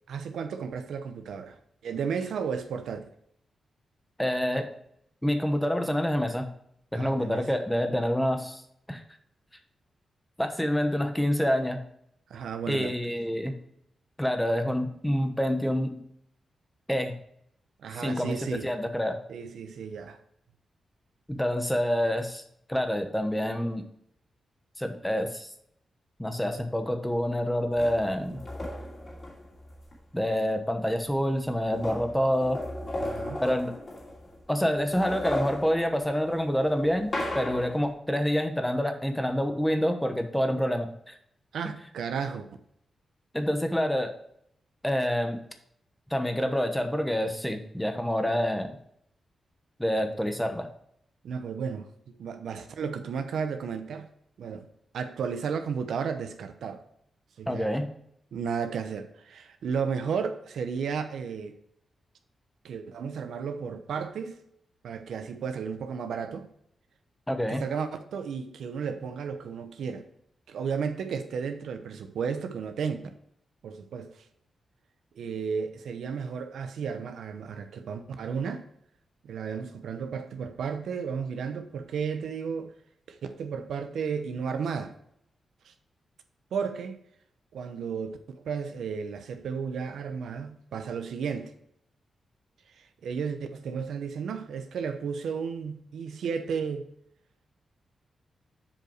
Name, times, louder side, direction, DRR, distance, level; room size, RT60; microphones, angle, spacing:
voice 1, 0.1-1.6 1.8-3.0 6.9-7.4 12.3-12.9 17.8-18.7 19.3-20.2 33.0-33.4 41.5-42.5 51.2-51.9 52.2-54.1 54.4-54.7 54.9-56.8 57.4-57.7 58.3-61.5 62.6-64.4 64.8-66.5 67.5-70.1 70.5-73.0 73.6-74.1 75.2-78.6 79.2-82.7 83.1-84.9 85.6-85.7 86.5-87.0 87.5-91.5 92.7-96.9, right 6 dB, 90° right, 0.8 m, -33 dB
voice 2, 4.2-4.7 5.2-6.5 6.9-8.6 8.9-9.0 10.4-11.8 12.7-13.6 14.2-16.0 16.9-17.2 17.9-19.2 21.3-22.4 22.7-23.8 24.8-25.5 26.2-28.4 30.1-32.6 33.4-33.7 34.5-41.2 43.3-44.1 44.8-45.4 46.1-48.7 49.8-50.7 57.5-57.9 67.3-67.7, equal, 5° left, 1.0 m, -27 dB
sound 1, 27.8-29.9 30.9-31.0 31.3-34.4 34.8-37.9, left 1 dB, 40° left, 2.6 m, -36 dB
7.5 x 5.0 x 4.5 m
cardioid pair, 100°, 0 cm